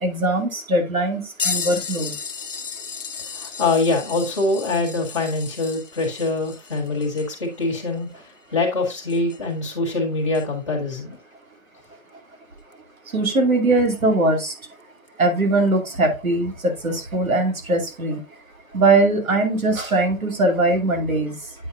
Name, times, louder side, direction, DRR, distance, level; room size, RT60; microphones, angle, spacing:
voice 1, 0.0-2.1 13.1-14.5 15.2-18.2 18.7-21.3, right 2 dB, 75° right, 3 dB, 2.4 m, -20 dB
sound 1, 1.4-9.6 10.3-10.4 12.7-12.8 13.9-14.0 15.1-15.2, left 6 dB, 60° left, 0.8 m, -34 dB
voice 2, 3.3-8.1 8.5-11.2, left 2 dB, 20° left, -2 dB, 1.5 m, -24 dB
8.9 x 5.3 x 2.5 m, 0.26 s
hypercardioid pair, 180°, 42 cm